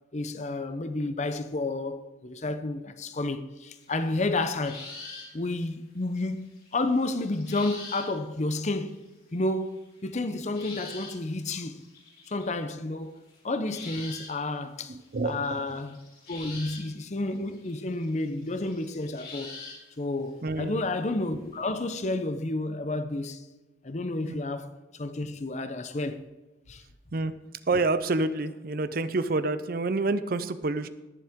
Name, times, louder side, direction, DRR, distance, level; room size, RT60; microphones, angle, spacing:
voice 1, 0.1-4.8 5.3-9.0 9.3-9.8 10.0-11.8 12.3-13.2 13.4-15.0 15.2-16.0 16.3-19.6 20.0-23.5 23.8-24.7 25.0-26.2 26.7-26.8, left 2 dB, 40° left, 0.7 m, -31 dB
sound 1, 3.8-5.5 5.8-5.9 6.2-8.1 8.4-9.0 9.7-12.5 13.3-13.4 13.7-14.5 14.8-19.8 20.5-21.2 21.6-21.7, left 4 dB, 60° left, 4.1 m, -45 dB
voice 2, 14.9-15.6 20.4-20.8 24.3-24.4 27.1-27.3 27.7-30.9, right 3 dB, 55° right, 0.6 m, -28 dB
18.0 x 7.3 x 3.7 m
head